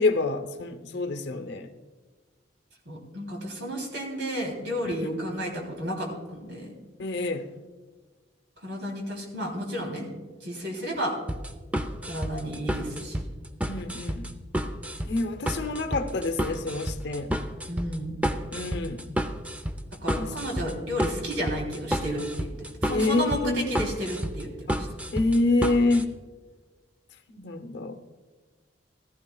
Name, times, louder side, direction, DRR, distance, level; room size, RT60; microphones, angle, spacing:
voice 1, 0.0-1.7 4.8-5.2 7.0-7.5 13.7-14.3 15.0-17.3 18.5-19.0 20.2-20.3 22.9-23.7 24.7-24.8 25.1-26.1 27.3-28.0, left 2 dB, 65° left, 0.8 m, -27 dB
voice 2, 2.8-6.7 8.6-10.1 10.4-11.1 12.0-13.2 17.7-18.2 20.0-24.9, equal, 80° right, 3.2 m, -32 dB
sound 1, 11.3-26.0, equal, 10° right, 0.5 m, -31 dB
15.5 x 14.0 x 2.3 m
head